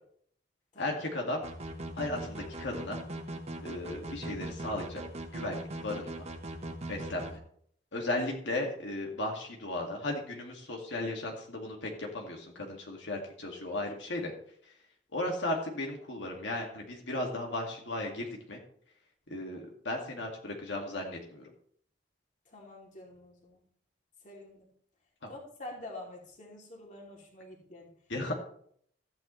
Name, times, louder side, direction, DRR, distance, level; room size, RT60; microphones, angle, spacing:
voice 1, 0.8-1.4 2.0-3.0 3.6-5.0 5.3-6.3 6.9-7.4 7.9-14.3 15.1-18.6 19.3-21.5 25.2-25.3 28.1-28.4, left 1 dB, 85° left, 0 dB, 2.1 m, -35 dB
sound 1, 1.4-7.3, right 1 dB, 35° right, 1.3 m, -40 dB
voice 2, 22.5-23.6 24.2-24.7 25.3-27.9, left 2 dB, 40° left, -1 dB, 2.8 m, -47 dB
14.0 x 9.4 x 3.2 m, 0.63 s
head